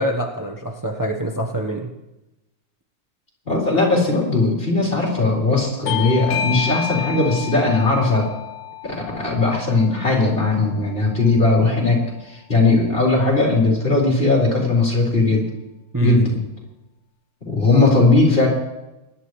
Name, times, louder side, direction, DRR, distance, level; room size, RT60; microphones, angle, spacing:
voice 1, 0.0-1.9 15.9-16.2, right 2 dB, 25° right, 0 dB, 0.4 m, -24 dB
voice 2, 3.4-8.3 8.8-15.5 16.0-16.3 17.5-18.5, left 3 dB, 25° left, -3 dB, 3.8 m, -18 dB
Bell / Doorbell, 5.9-11.0, left 9 dB, 80° left, 1.6 m, -30 dB
23.5 x 11.0 x 3.2 m, 0.98 s
omnidirectional pair, 2.3 m